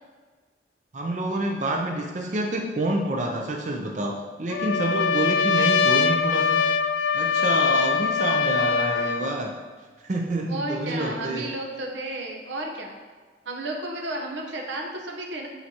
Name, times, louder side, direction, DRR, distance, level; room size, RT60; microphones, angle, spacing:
voice 1, 0.9-6.6 7.1-9.5 10.0-11.5, right 1 dB, 40° right, 1 dB, 0.5 m, -28 dB
Trumpet, 4.5-9.3, left 5 dB, 75° left, 0.4 m, -22 dB
voice 2, 7.7-8.3 10.5-13.0 13.4-15.5, right 1 dB, 85° right, 1 dB, 0.9 m, -33 dB
9.0 x 4.5 x 2.8 m, 1.4 s
head